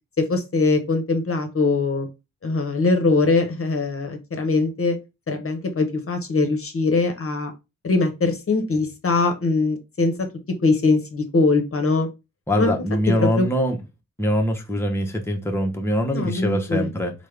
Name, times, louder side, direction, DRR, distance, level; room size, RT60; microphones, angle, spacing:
voice 1, 0.2-2.1 2.4-5.0 5.3-7.5 7.8-12.1 12.6-12.7 13.2-13.5 16.1-16.9, left 3 dB, 45° left, 0.8 m, -22 dB
voice 2, 12.5-13.8 14.2-17.1, equal, 10° left, 0.7 m, -23 dB
3.4 x 2.1 x 3.2 m
cardioid pair, 55°, 31 cm